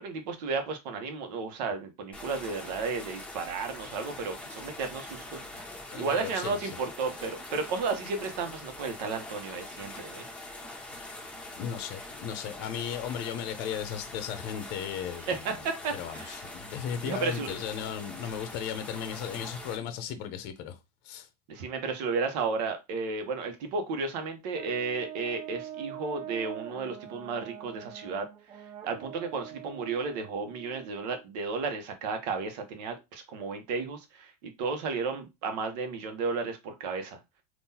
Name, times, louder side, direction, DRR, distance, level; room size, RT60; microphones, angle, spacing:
voice 1, 0.0-5.4 5.9-10.2 15.3-16.4 17.1-17.5 21.5-28.3 28.8-37.2, right 4 dB, 75° right, 1.0 m, -33 dB
sound 1, 2.1-19.8, left 2 dB, 5° left, 1.1 m, -43 dB
voice 2, 5.9-6.7 11.6-21.3, left 8 dB, 55° left, 0.7 m, -36 dB
Brass instrument, 24.5-31.2, right 10 dB, 30° right, 0.5 m, -43 dB
3.7 x 2.5 x 2.8 m
supercardioid pair, 135°, 21 cm